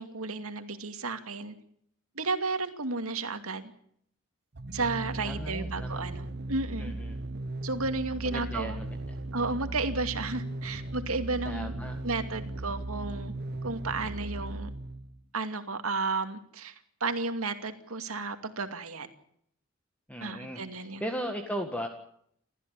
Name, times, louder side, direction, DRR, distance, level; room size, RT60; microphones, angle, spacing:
voice 1, 0.0-1.6 2.2-3.7 4.7-6.9 7.6-8.8 9.3-11.7 12.0-13.3 13.6-14.7 15.3-16.7 17.0-19.1 20.2-21.1, right 3 dB, 75° right, 7 dB, 2.5 m, -33 dB
sound 1, 4.5-15.3, right 2 dB, 50° right, 1.0 m, -37 dB
voice 2, 5.2-6.0 6.8-7.2 8.2-9.0 11.4-12.0 20.1-21.9, equal, 5° left, 4 dB, 1.8 m, -37 dB
29.5 x 14.5 x 8.5 m, 0.70 s
head